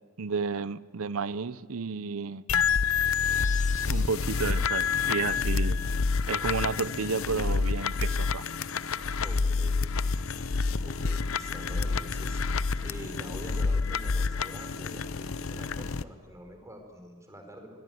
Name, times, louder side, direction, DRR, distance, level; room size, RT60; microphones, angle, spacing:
voice 1, 0.2-2.4 3.9-5.8 6.3-8.4, right 5 dB, 75° right, 17 dB, 0.7 m, -32 dB
sound 1, 2.5-16.0, left 5 dB, 65° left, 0.7 m, -28 dB
sound 2, 3.3-4.7, left 7 dB, 35° left, 2.1 m, -46 dB
voice 2, 9.2-9.9 10.8-12.4 12.8-17.7, equal, 15° right, 4 dB, 4.6 m, -45 dB
24.5 x 22.0 x 9.3 m, 1.5 s
head